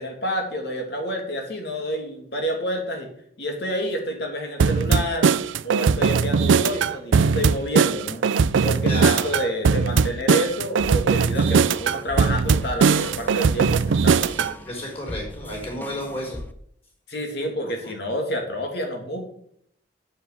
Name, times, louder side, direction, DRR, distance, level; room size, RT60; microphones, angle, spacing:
voice 1, 0.0-3.1 3.4-5.3 5.6-8.2 8.6-14.3 17.1-19.2, equal, 60° left, 2 dB, 2.7 m, -29 dB
sound 1, 4.6-14.5, right 5 dB, 80° right, 0.4 m, -20 dB
voice 2, 8.8-9.3 14.7-16.4, equal, 30° left, 0 dB, 4.9 m, -31 dB
sound 2, 10.8-16.5, left 1 dB, 10° left, 0.4 m, -38 dB
8.2 x 7.4 x 6.7 m, 0.67 s
head